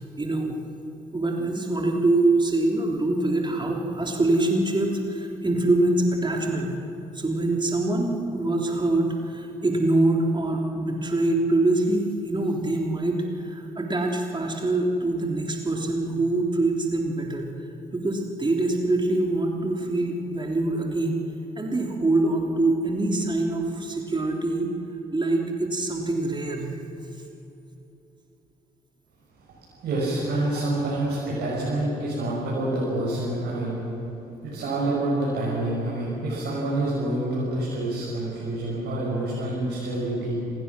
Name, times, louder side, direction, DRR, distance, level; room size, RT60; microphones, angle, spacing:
voice 1, 0.2-0.6 1.1-6.8 7.1-17.5 17.9-21.2 21.6-24.7 25.1-26.7, right 2 dB, 25° right, 1 dB, 3.6 m, -24 dB
voice 2, 29.8-33.8 34.4-40.4, right 1 dB, 60° right, -7 dB, 7.1 m, -27 dB
29.0 x 20.0 x 6.3 m, 2.9 s
figure-of-eight pair, 40°, 19 cm